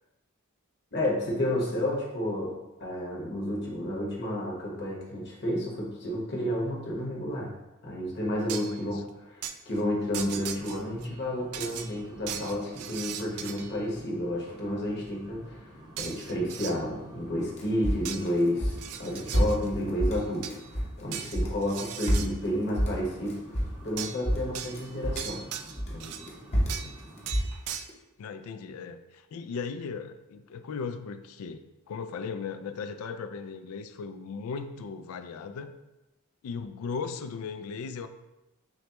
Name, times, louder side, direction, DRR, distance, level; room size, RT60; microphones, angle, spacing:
voice 1, 0.9-7.5 7.8-25.4 25.9-26.1, left 1 dB, 55° left, -3 dB, 1.2 m, -31 dB
sound 1, 8.5-8.8 9.4-9.5 10.1-11.1 11.5-13.8 16.0-16.8 18.0-18.3 18.7-19.7 20.1-20.7 21.1-22.3 24.0-24.2 24.5-26.3 26.7-27.0 27.3-27.8, right 9 dB, 85° right, 0.3 m, -38 dB
voice 2, 8.7-9.0 26.5-27.0 28.2-35.7 36.4-38.1, left 5 dB, 75° left, 9 dB, 0.3 m, -37 dB
sound 2, 10.0-21.1 22.2-27.3, equal, 20° right, 0.6 m, -50 dB
sound 3, 17.6-21.0 21.3-24.0 24.3-25.4 25.8-27.9, equal, 30° left, 0.8 m, -28 dB
6.2 x 2.2 x 2.9 m, 0.98 s
head